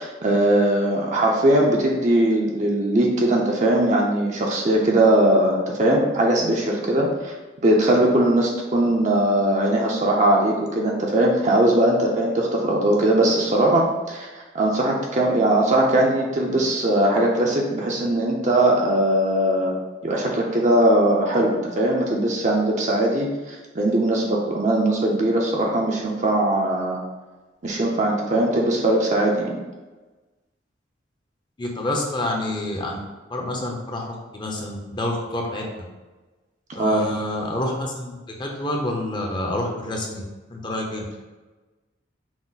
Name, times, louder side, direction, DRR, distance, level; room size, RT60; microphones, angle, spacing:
voice 1, 0.0-7.3 7.6-19.8 20.0-27.0 27.6-29.6 36.8-37.0, right 1 dB, 40° right, -1 dB, 0.5 m, -20 dB
voice 2, 31.6-33.0 33.3-35.9 36.7-40.2 40.5-41.0, left 1 dB, 25° left, 0 dB, 0.6 m, -28 dB
6.0 x 2.0 x 3.9 m, 1.2 s
head